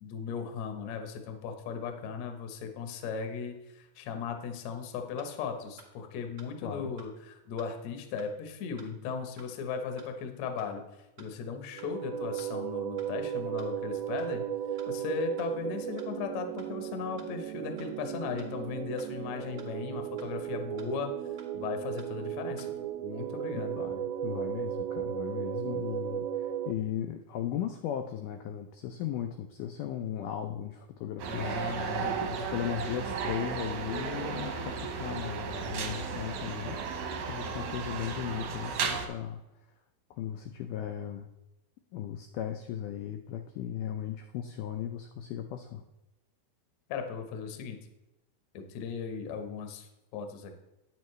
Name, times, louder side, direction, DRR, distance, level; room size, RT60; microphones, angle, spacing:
voice 1, 0.0-10.8 11.2-14.4 14.9-21.1 21.5-22.7 23.0-23.8 31.3-32.5 46.9-47.8 48.5-50.6, left 6 dB, 65° left, 5 dB, 1.8 m, -37 dB
sound 1, 5.2-5.3 5.8-5.9 6.4-6.5 7.0-7.1 7.6-7.7 8.2-8.3 8.8-8.9 9.4-9.5 10.0-10.1 10.6-10.7 11.2-11.3 11.8-11.9 12.4-12.5 13.0-13.1 13.6-13.7 14.2-14.3 14.8-14.9 15.4-15.5 16.0-16.1 16.6-16.7 17.2-17.3 17.8-17.9 18.4-18.5 19.0-19.1 19.6-19.7 20.2-20.3 20.8-20.9 21.4-21.5 22.0-22.1 22.6-22.7, right 5 dB, 55° right, 0.8 m, -53 dB
voice 2, 6.6-6.9 23.7-39.4 40.1-41.3 41.9-45.8, left 10 dB, 80° left, 6 dB, 1.9 m, -37 dB
sound 2, 11.7-26.7, right 10 dB, 85° right, 2.4 m, -36 dB
sound 3, 31.2-39.1, right 5 dB, 70° right, 2.5 m, -34 dB
9.3 x 9.1 x 3.2 m, 0.96 s
omnidirectional pair, 4.3 m